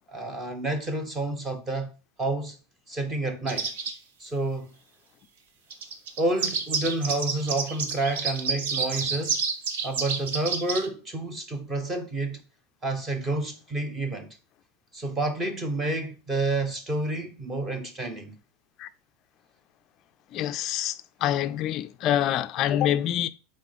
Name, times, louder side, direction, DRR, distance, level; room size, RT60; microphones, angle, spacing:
voice 1, 0.1-1.9 2.2-2.6 2.9-3.7 4.2-4.7 6.2-9.4 9.8-12.4 12.8-14.4 14.9-18.4, right 2 dB, 15° right, 0.8 m, -29 dB
sound 1, 3.5-3.9 5.7-10.9, right 5 dB, 75° right, 1.1 m, -29 dB
voice 2, 20.3-21.0 21.2-23.3, left 11 dB, 30° left, 0.4 m, -26 dB
6.0 x 4.2 x 5.0 m
supercardioid pair, 175°, 0 cm